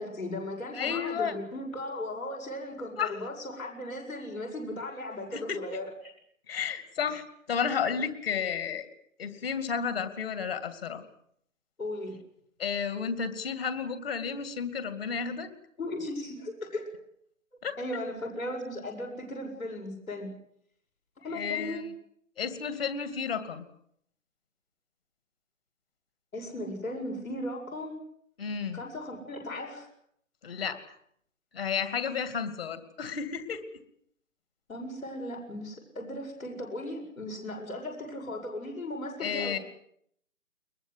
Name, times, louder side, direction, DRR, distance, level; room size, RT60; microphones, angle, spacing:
voice 1, 0.0-5.9 11.8-12.2 15.8-16.9 17.8-20.3 21.2-21.9 26.3-28.0 28.7-29.9 34.7-39.6, left 1 dB, 75° left, 1 dB, 7.6 m, -37 dB
voice 2, 0.7-1.3 3.0-3.1 5.3-5.6 6.5-8.9 9.2-11.0 12.6-15.5 17.6-17.8 21.3-21.9 22.4-23.6 28.4-28.8 30.4-30.8 31.5-33.6 39.2-39.6, left 6 dB, 45° left, 10 dB, 2.6 m, -32 dB
22.0 x 22.0 x 8.3 m, 0.69 s
figure-of-eight pair, 150°, 42 cm